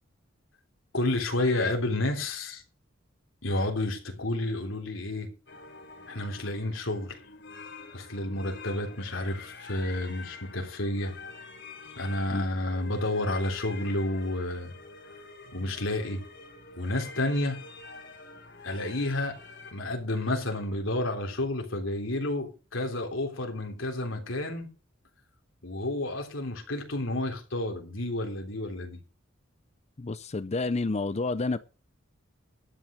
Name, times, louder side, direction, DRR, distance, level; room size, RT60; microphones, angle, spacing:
voice 1, 0.9-2.6 3.4-5.3 6.1-7.2 7.9-11.1 12.0-14.7 15.5-16.2 16.8-17.6 18.6-19.3 19.7-24.7 25.6-29.0, left 1 dB, 75° left, 3.5 m, -30 dB
sound 1, 5.5-19.7, left 4 dB, 60° left, 3.7 m, -46 dB
voice 2, 30.0-31.6, left 3 dB, 35° left, 0.5 m, -29 dB
12.5 x 9.2 x 5.1 m
head